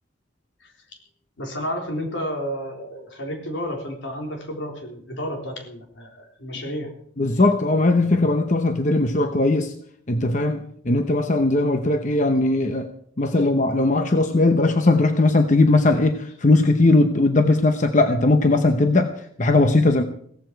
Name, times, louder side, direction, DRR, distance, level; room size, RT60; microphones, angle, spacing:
voice 1, 1.4-6.9 13.3-13.5, equal, 75° left, 2 dB, 3.7 m, -31 dB
voice 2, 7.2-9.7 10.1-12.9 13.2-20.0, left 2 dB, 40° left, 7 dB, 0.9 m, -19 dB
17.0 x 14.5 x 4.7 m, 0.63 s
head